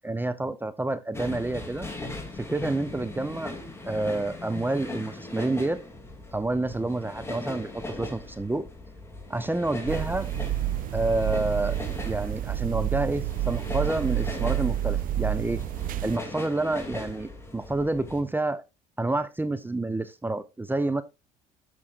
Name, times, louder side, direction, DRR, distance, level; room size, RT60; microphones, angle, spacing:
voice 1, 0.0-1.9 2.3-3.5 3.8-5.8 6.3-8.7 9.3-10.3 10.9-11.8 12.0-15.6 16.0-18.6 19.0-21.0, right 2 dB, 10° right, 0.7 m, -28 dB
sound 1, 1.1-18.2, left 2 dB, 15° left, 2.7 m, -39 dB
sound 2, 9.9-16.2, right 13 dB, 50° right, 0.5 m, -29 dB
13.5 x 6.2 x 2.5 m
supercardioid pair, 75°, 19 cm